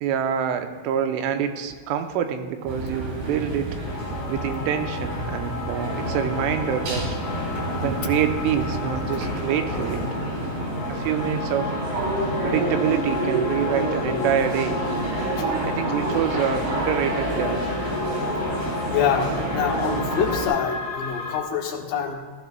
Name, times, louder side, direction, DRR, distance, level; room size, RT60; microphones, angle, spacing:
voice 1, 0.0-3.8 4.3-7.2 7.7-10.0 10.9-11.8 12.4-14.9 15.6-17.6, right 9 dB, 90° right, 6 dB, 3.2 m, -26 dB
sound 1, 2.7-20.5, right 2 dB, 70° right, 6.2 m, -29 dB
sound 2, 3.8-21.4, left 5 dB, 40° left, 2.8 m, -34 dB
sound 3, 5.8-20.3, right 1 dB, 45° right, 1.1 m, -33 dB
voice 2, 18.9-22.2, left 7 dB, 75° left, 0 dB, 3.5 m, -25 dB
19.0 x 14.5 x 2.3 m, 1.4 s
omnidirectional pair, 5.5 m